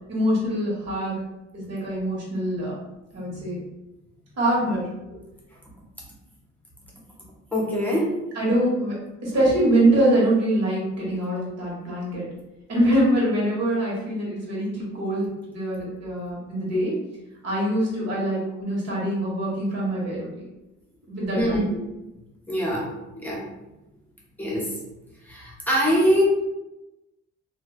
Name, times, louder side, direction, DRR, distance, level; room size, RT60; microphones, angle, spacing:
voice 1, 0.1-1.1 1.5-2.8 3.1-3.6 4.4-4.9 8.3-9.0 9.2-12.2 12.7-16.9 17.4-20.4 21.1-21.6, right 1 dB, 60° right, -5 dB, 1.4 m, -24 dB
voice 2, 7.5-8.1 21.3-21.6 22.5-22.9 23.2-23.4 24.4-24.6 25.3-26.2, equal, 5° left, -5 dB, 0.9 m, -23 dB
3.0 x 2.7 x 2.3 m, 0.98 s
cardioid pair, 90°, 30 cm